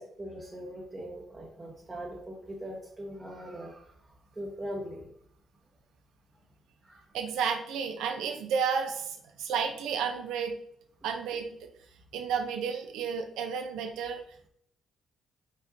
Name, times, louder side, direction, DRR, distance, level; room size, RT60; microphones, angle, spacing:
voice 1, 0.2-3.9 4.4-5.1 6.8-7.0, equal, 20° right, -3 dB, 0.9 m, -40 dB
voice 2, 7.1-10.6 11.0-11.7 12.1-14.2, right 6 dB, 90° right, 5 dB, 0.7 m, -32 dB
4.7 x 4.2 x 2.7 m, 0.66 s
cardioid pair, 90°, 0 cm